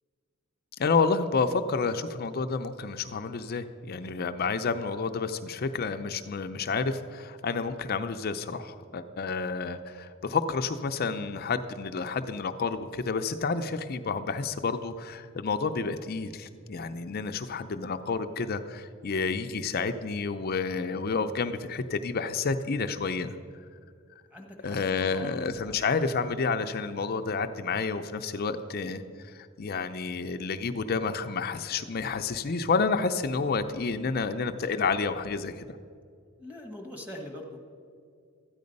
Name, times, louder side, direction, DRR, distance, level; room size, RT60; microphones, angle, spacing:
voice 1, 0.8-23.4 24.6-35.6, left 4 dB, 45° left, 8 dB, 0.5 m, -30 dB
voice 2, 24.3-25.8 36.4-37.6, left 1 dB, 10° right, 2 dB, 1.4 m, -43 dB
13.0 x 9.5 x 5.3 m, 2.2 s
head